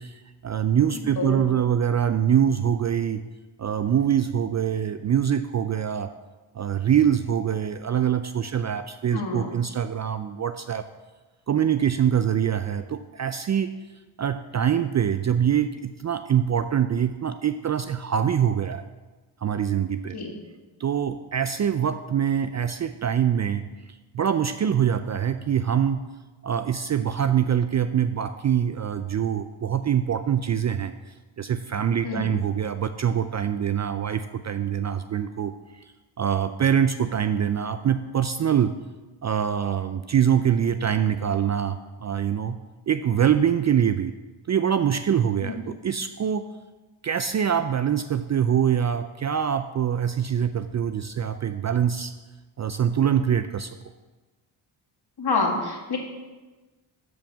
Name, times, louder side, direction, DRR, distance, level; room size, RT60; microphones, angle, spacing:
voice 1, 0.0-3.3 3.6-6.1 6.5-10.9 11.5-13.7 14.2-18.8 19.4-20.2 20.8-26.0 26.4-35.8 36.2-38.8 39.2-42.6 42.9-44.1 44.5-46.5 47.0-52.1 52.6-53.8, right 9 dB, 35° right, 10 dB, 0.4 m, -24 dB
voice 2, 0.9-1.4 9.1-9.5 20.1-20.3 32.0-32.3 45.4-45.5 55.2-56.0, left 3 dB, 50° left, 1 dB, 1.8 m, -28 dB
7.5 x 4.7 x 7.1 m, 1.2 s
supercardioid pair, 45°, 50 cm